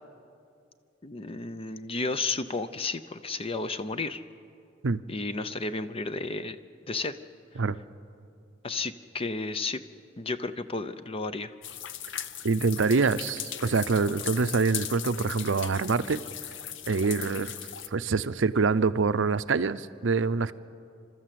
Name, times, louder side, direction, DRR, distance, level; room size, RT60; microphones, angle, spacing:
voice 1, 1.0-4.2 5.1-6.6 6.9-7.2 8.6-9.8 10.2-11.5, left 3 dB, 30° left, 12 dB, 0.6 m, -32 dB
sound 1, 11.6-17.9, left 10 dB, 70° left, 0.7 m, -38 dB
voice 2, 12.4-16.2 16.9-17.5 17.9-20.5, right 4 dB, 70° right, 14 dB, 0.6 m, -25 dB
29.5 x 13.0 x 7.6 m, 2.4 s
head